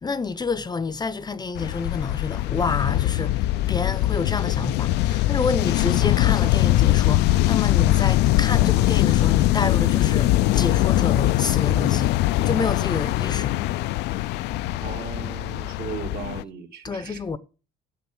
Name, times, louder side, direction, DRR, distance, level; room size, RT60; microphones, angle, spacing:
voice 1, 0.0-13.6 16.8-17.4, left 4 dB, 25° left, 0.7 m, -28 dB
sound 1, 1.5-16.4, left 16 dB, 85° left, 0.4 m, -21 dB
voice 2, 14.8-17.4, right 6 dB, 65° right, 2.6 m, -37 dB
9.5 x 8.0 x 6.1 m
cardioid pair, 110°, 17 cm